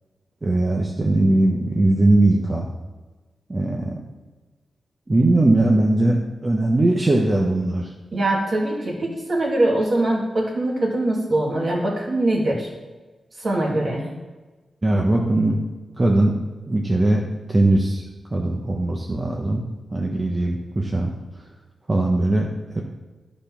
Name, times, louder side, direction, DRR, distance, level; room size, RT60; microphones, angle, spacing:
voice 1, 0.4-2.7 3.5-4.0 5.1-7.9 14.8-15.6 16.0-16.3 16.7-18.0 18.3-19.6 19.9-21.1 21.9-22.5 22.7-22.8, right 2 dB, 25° right, -1 dB, 1.1 m, -20 dB
voice 2, 8.1-12.7 13.4-14.1, right 1 dB, 50° right, -1 dB, 2.4 m, -22 dB
11.5 x 5.2 x 5.9 m, 1.2 s
wide cardioid pair, 100°, 0 cm